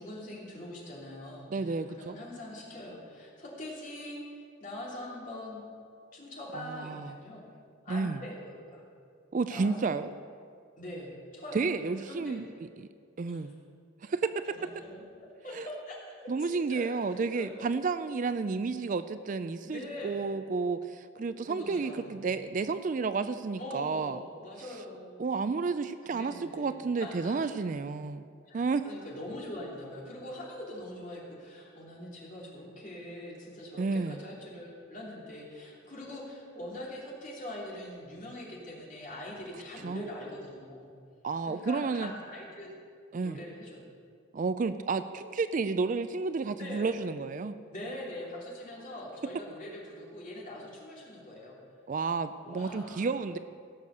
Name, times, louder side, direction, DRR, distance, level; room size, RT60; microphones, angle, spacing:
voice 1, 0.0-4.2 4.6-5.6 6.1-7.4 7.8-8.8 9.5-9.7 10.8-11.6 12.1-12.4 13.3-13.4 14.6-15.0 15.4-16.9 17.3-17.7 19.6-20.3 21.5-22.3 23.6-25.3 26.1-27.4 28.5-40.9 41.5-42.7 43.2-43.8 46.6-46.9 47.7-51.6 52.4-53.1, left 1 dB, 40° left, -4 dB, 3.1 m, -43 dB
voice 2, 1.5-2.2 6.5-7.1 7.9-8.2 9.3-10.1 11.5-12.9 13.2-13.5 14.0-14.3 15.5-15.7 16.3-24.2 24.7-24.8 25.2-28.3 28.5-28.8 33.8-34.2 39.8-40.1 41.2-42.1 43.1-43.4 44.3-47.5 51.9-53.4, right 4 dB, 40° right, 12 dB, 0.3 m, -31 dB
17.0 x 6.6 x 6.8 m, 2.2 s
head